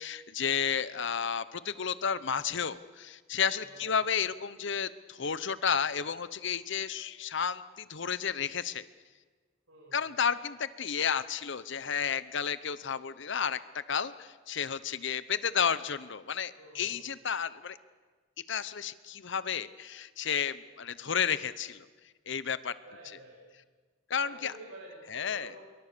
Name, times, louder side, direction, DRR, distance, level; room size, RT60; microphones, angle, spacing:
voice 1, 0.0-8.8 9.9-17.8 18.5-21.8 22.3-22.7 24.1-24.5 25.1-25.5, left 7 dB, 60° left, 15 dB, 0.9 m, -32 dB
voice 2, 3.6-4.0 5.8-6.0 9.7-10.1 16.5-17.1 22.8-23.4 24.2-25.6, right 2 dB, 90° right, -5 dB, 7.9 m, -50 dB
26.0 x 23.0 x 6.9 m, 1.4 s
head